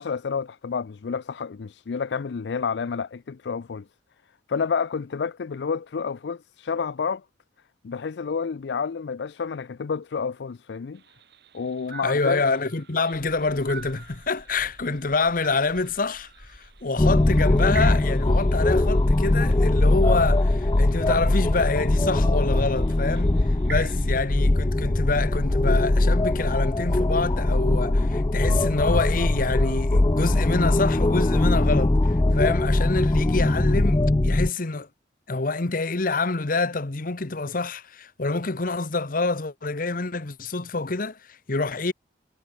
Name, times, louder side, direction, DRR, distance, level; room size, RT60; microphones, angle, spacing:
voice 1, 0.0-3.9 4.5-7.2 7.8-11.0 11.5-12.4, left 5 dB, 75° left, 0.5 m, -29 dB
sound 1, 10.9-24.2, right 6 dB, 65° right, 5.5 m, -46 dB
voice 2, 12.0-34.9 35.3-41.9, left 3 dB, 50° left, 1.1 m, -27 dB
sound 2, 13.1-20.1, equal, 25° right, 2.9 m, -50 dB
sound 3, 17.0-34.5, left 2 dB, 25° left, 0.5 m, -21 dB
head